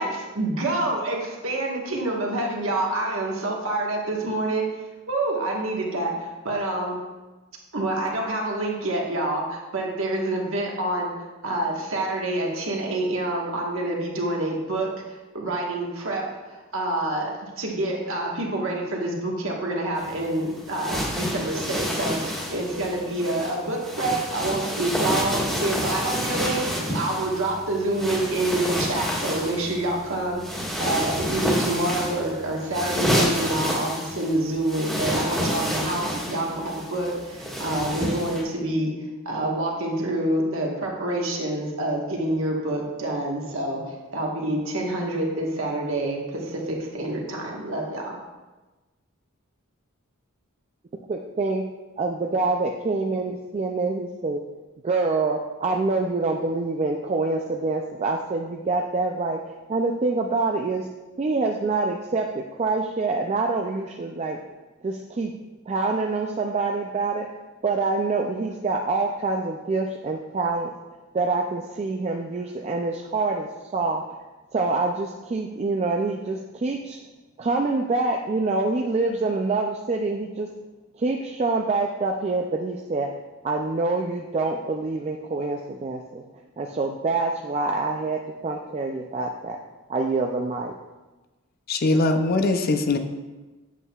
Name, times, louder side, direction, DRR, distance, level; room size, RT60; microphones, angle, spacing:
voice 1, 0.0-4.6 5.1-7.0 7.7-11.1 11.4-14.9 15.3-38.9 39.2-48.2, right 1 dB, 65° right, 1.4 m, -27 dB
sound 1, 20.0-38.4, equal, 5° left, 1.6 m, -29 dB
voice 2, 51.1-51.6 52.0-54.4 54.8-60.9 61.2-64.4 64.8-65.3 65.7-67.3 67.6-70.7 71.1-74.0 74.5-77.0 77.4-80.5 81.0-83.1 83.4-86.2 86.6-89.6 89.9-90.7, right 3 dB, 30° right, 0.3 m, -26 dB
voice 3, 91.7-93.0, left 2 dB, 45° left, 0.5 m, -21 dB
8.2 x 7.4 x 2.3 m
head